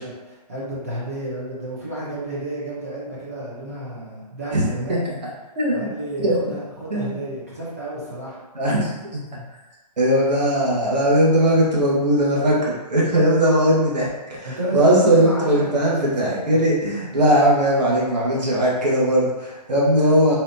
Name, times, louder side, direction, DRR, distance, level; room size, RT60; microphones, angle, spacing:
voice 1, 0.0-5.1 5.7-8.4 14.4-16.4, right 1 dB, 20° right, -6 dB, 0.7 m, -31 dB
voice 2, 5.5-5.9 6.2-6.4 6.9-7.1 8.5-9.2 10.0-20.4, right 1 dB, 80° right, -5 dB, 1.5 m, -19 dB
4.2 x 2.7 x 2.6 m, 1.1 s
hypercardioid pair, 175°, 21 cm